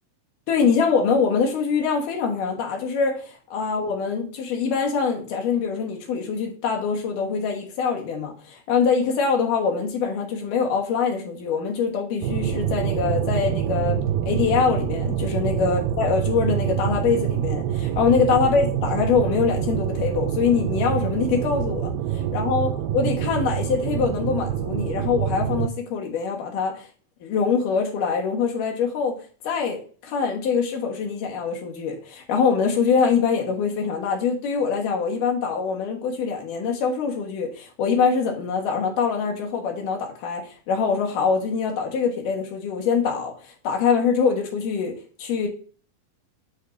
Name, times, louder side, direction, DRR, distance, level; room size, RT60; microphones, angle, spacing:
voice 1, 0.5-21.9 22.3-26.9 27.2-29.2 29.4-43.3 43.6-45.5, left 5 dB, 80° left, 1 dB, 2.9 m, -24 dB
sound 1, 12.2-25.7, right 9 dB, 85° right, 2.2 m, -26 dB
7.3 x 2.6 x 5.7 m, 0.41 s
omnidirectional pair, 3.7 m